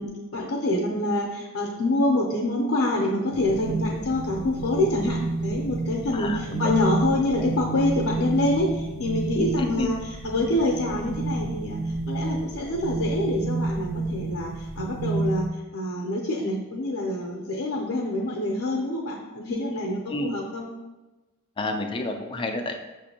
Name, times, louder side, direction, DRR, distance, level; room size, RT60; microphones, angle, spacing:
voice 1, 0.0-10.0 10.2-15.5 15.7-20.7, left 1 dB, 70° left, -2 dB, 0.5 m, -26 dB
sound 1, 3.3-15.5, right 3 dB, 55° right, 0.5 m, -30 dB
voice 2, 6.1-6.7 9.8-9.9 20.1-20.3 21.6-22.8, left 2 dB, 25° left, 4 dB, 0.3 m, -29 dB
6.1 x 2.5 x 2.7 m, 1.1 s
head